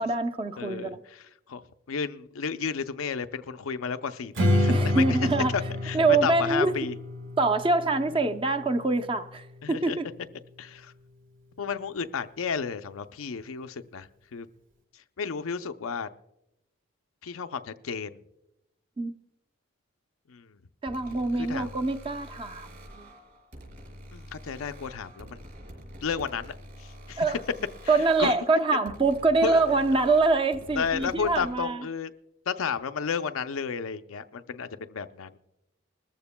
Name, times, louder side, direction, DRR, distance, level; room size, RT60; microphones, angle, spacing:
voice 1, 0.0-1.0 4.7-5.5 5.9-6.7 7.4-10.1 19.0-19.1 20.8-23.1 27.2-27.4 27.9-31.8, right 3 dB, 25° right, 0.6 m, -25 dB
voice 2, 0.6-1.6 1.9-5.2 5.5-7.0 8.1-8.2 9.6-10.0 10.6-10.9 11.6-14.5 14.9-16.1 17.2-18.2 20.3-20.6 21.3-21.8 24.1-25.4 26.0-27.3 27.8-28.3 29.4-29.6 30.8-32.1 32.5-35.4, left 6 dB, 90° left, 0.5 m, -33 dB
Strum, 4.3-9.6, left 1 dB, 70° right, 1.6 m, -29 dB
sound 1, 20.9-31.5, equal, 45° right, 4.6 m, -46 dB
21.0 x 14.0 x 2.2 m
head